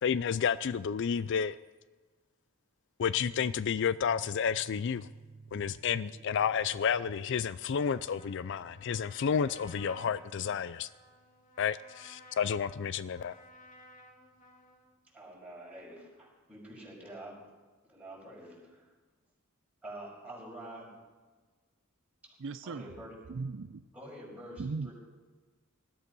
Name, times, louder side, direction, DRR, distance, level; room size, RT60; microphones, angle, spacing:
voice 1, 0.0-1.6 3.0-5.1 5.5-10.9 11.6-13.4, left 7 dB, 60° left, 16 dB, 0.4 m, -31 dB
sound 1, 3.0-14.2, right 3 dB, 45° right, 1.2 m, -56 dB
Trumpet, 7.8-14.9, left 2 dB, 35° left, 2.2 m, -56 dB
voice 2, 15.1-17.4 17.8-18.9 19.8-20.9 22.6-23.1 23.9-24.9, right 1 dB, 5° right, -4 dB, 5.9 m, -47 dB
voice 3, 22.4-22.9 23.3-23.8 24.6-24.9, right 4 dB, 60° right, 12 dB, 0.5 m, -37 dB
20.0 x 13.0 x 5.4 m, 1.3 s
head